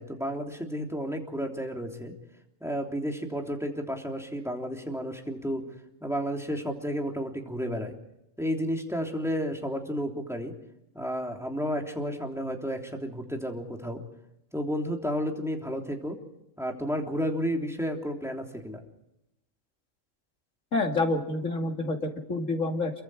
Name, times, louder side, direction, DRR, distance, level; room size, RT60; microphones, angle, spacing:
voice 1, 0.0-2.1 2.6-5.6 6.0-7.9 8.4-10.5 10.9-14.0 14.5-16.2 16.6-18.8, equal, ahead, 1 dB, 3.2 m, -32 dB
voice 2, 20.7-22.9, left 2 dB, 75° left, 3 dB, 2.9 m, -28 dB
27.5 x 23.5 x 4.9 m, 0.86 s
omnidirectional pair, 1.3 m